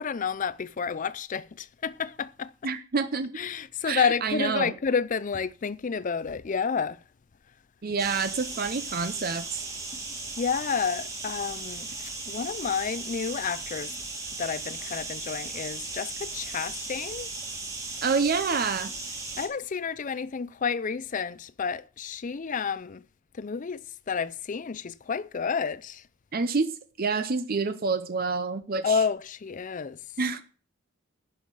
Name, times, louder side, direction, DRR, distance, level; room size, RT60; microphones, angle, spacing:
voice 1, 0.0-2.5 3.4-7.0 10.4-13.9 14.4-17.3 19.4-23.0 23.4-23.8 24.1-26.0 28.8-30.0, left 6 dB, 40° left, 0.4 m, -30 dB
voice 2, 2.6-3.4 3.8-4.7 7.8-9.6 18.0-18.9 26.3-29.0 30.2-30.4, right 4 dB, 45° right, 0.6 m, -28 dB
sound 1, 8.0-19.5, right 3 dB, 15° right, 2.4 m, -37 dB
11.0 x 5.5 x 7.7 m
head